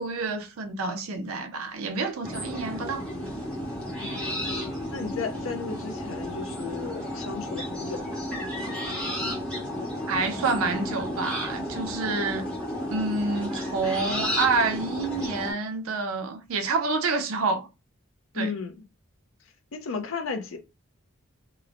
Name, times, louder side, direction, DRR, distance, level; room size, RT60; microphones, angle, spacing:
voice 1, 0.0-3.0 10.1-12.4 12.9-17.7 18.3-18.5, right 3 dB, 80° right, 0.5 m, -28 dB
sound 1, 2.2-15.5, left 1 dB, 5° left, 0.8 m, -32 dB
voice 2, 4.0-8.3 18.3-18.8 19.7-20.6, left 4 dB, 70° left, 0.5 m, -35 dB
2.9 x 2.0 x 2.5 m
head